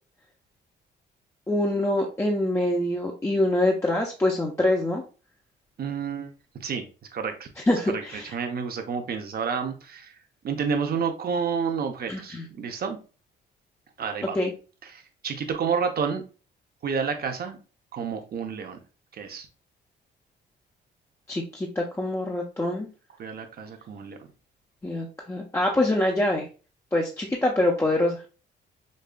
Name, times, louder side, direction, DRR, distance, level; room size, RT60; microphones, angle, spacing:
voice 1, 1.5-5.0 7.7-8.3 12.1-12.5 14.3-14.5 21.3-22.9 24.8-26.5 26.9-28.2, left 1 dB, 15° left, -1 dB, 0.6 m, -25 dB
voice 2, 5.8-6.8 7.1-7.5 7.9-10.1 10.4-13.0 14.0-14.4 14.8-16.2 16.8-17.6 17.9-18.8 19.1-19.5 23.2-24.2, right 6 dB, 50° right, 5 dB, 0.8 m, -30 dB
5.2 x 2.3 x 2.2 m, 0.34 s
cardioid pair, 90°, 20 cm